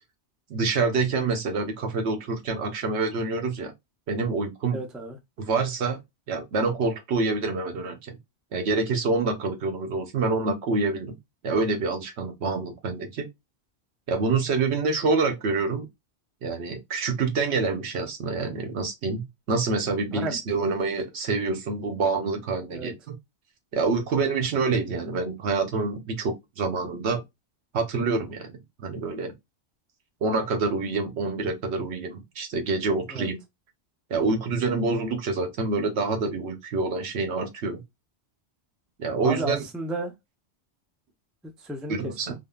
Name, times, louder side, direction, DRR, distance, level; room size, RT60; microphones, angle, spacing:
voice 1, 0.5-3.7 4.1-4.8 5.4-6.0 6.3-8.2 8.5-11.1 11.4-13.2 14.1-15.9 16.4-23.1 23.7-27.2 27.7-29.3 30.2-33.4 34.1-37.8 39.0-39.6 41.9-42.3, right 3 dB, 75° right, 1.0 m, -27 dB
voice 2, 4.7-5.2 20.1-20.4 22.7-22.9 33.1-33.3 39.2-40.1 41.4-42.1, right 1 dB, ahead, 0.3 m, -33 dB
3.6 x 2.0 x 2.2 m
omnidirectional pair, 1.1 m